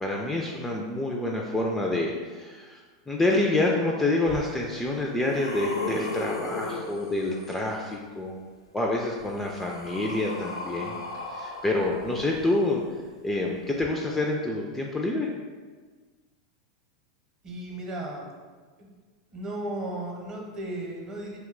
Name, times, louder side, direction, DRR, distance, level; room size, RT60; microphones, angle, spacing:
voice 1, 0.0-2.8 3.1-8.4 8.7-11.0 11.3-12.8 13.2-15.3, left 2 dB, 10° left, -1 dB, 0.3 m, -27 dB
sound 1, 4.3-4.4 4.9-7.7 8.9-12.8 13.7-13.8, left 2 dB, 85° left, 0.4 m, -36 dB
voice 2, 17.4-18.3 18.8-18.9 19.3-21.4, right 1 dB, 30° right, -2 dB, 0.8 m, -35 dB
2.7 x 2.2 x 3.7 m, 1.4 s
hypercardioid pair, 95°, 2 cm